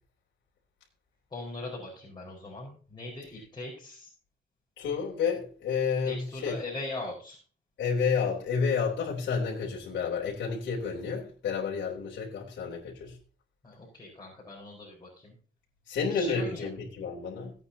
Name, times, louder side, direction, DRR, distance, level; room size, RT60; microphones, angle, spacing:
voice 1, 1.3-4.1 6.0-7.4 13.6-15.3 16.1-16.7, left 2 dB, 20° left, -5 dB, 4.8 m, -40 dB
voice 2, 4.8-6.6 7.8-13.2 15.9-17.5, left 5 dB, 70° left, -4 dB, 3.4 m, -30 dB
18.0 x 8.8 x 2.8 m, 0.40 s
cardioid pair, 90°, 20 cm